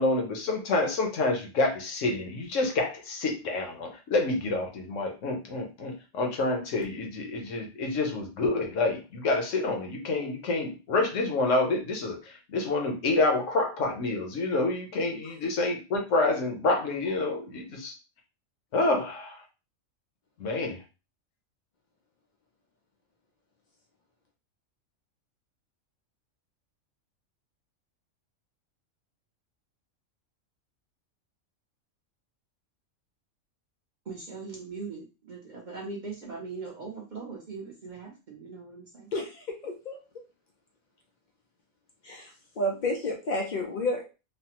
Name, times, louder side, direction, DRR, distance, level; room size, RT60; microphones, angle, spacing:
voice 1, 0.0-17.9 18.7-19.4 20.4-20.8, left 2 dB, 70° left, 3 dB, 1.0 m, -28 dB
voice 2, 34.1-39.1, right 4 dB, 50° right, -2 dB, 0.6 m, -40 dB
voice 3, 39.1-40.0 42.0-44.0, left 1 dB, 90° left, 1 dB, 0.4 m, -31 dB
3.2 x 2.0 x 2.8 m, 0.30 s
omnidirectional pair, 1.4 m